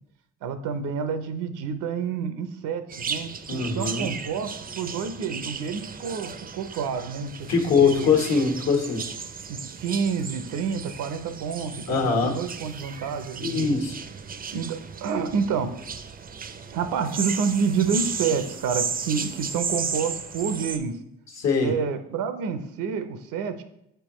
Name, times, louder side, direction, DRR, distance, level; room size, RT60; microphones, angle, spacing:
voice 1, 0.4-4.5 4.8-7.5 7.8-8.1 9.5-13.7 14.5-15.7 16.7-21.0 21.6-23.6, right 6 dB, 85° right, 9 dB, 0.7 m, -28 dB
sound 1, 2.9-20.8, right 6 dB, 30° right, 0.5 m, -35 dB
voice 2, 3.5-4.0 7.5-9.0 11.9-12.4 13.4-14.0 21.4-21.7, left 5 dB, 60° left, 2 dB, 1.3 m, -22 dB
6.7 x 4.6 x 3.0 m, 0.79 s
cardioid pair, 90°, 30 cm